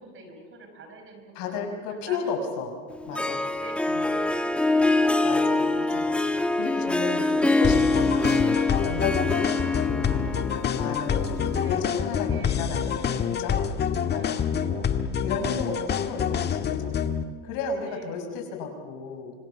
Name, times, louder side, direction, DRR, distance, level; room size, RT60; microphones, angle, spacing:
voice 1, 0.0-2.4 3.1-6.0 7.0-7.4 8.0-8.2 9.2-12.6 13.0-13.4 13.9-15.3 15.8-16.1 17.8-18.3, right 3 dB, 30° right, 5 dB, 5.0 m, -46 dB
voice 2, 1.3-2.7 3.0-3.4 3.9-4.1 5.2-6.1 6.5-8.4 8.8-9.5 10.8-13.0 13.4-13.6 14.1-14.4 15.2-16.9 17.4-19.3, left 5 dB, 60° left, 4 dB, 6.3 m, -33 dB
Harp, 2.9-11.9, left 2 dB, 5° left, 1.4 m, -25 dB
sound 1, 7.6-17.2, left 7 dB, 25° left, 1.4 m, -27 dB
26.5 x 24.5 x 7.3 m, 1.5 s
supercardioid pair, 140°, 38 cm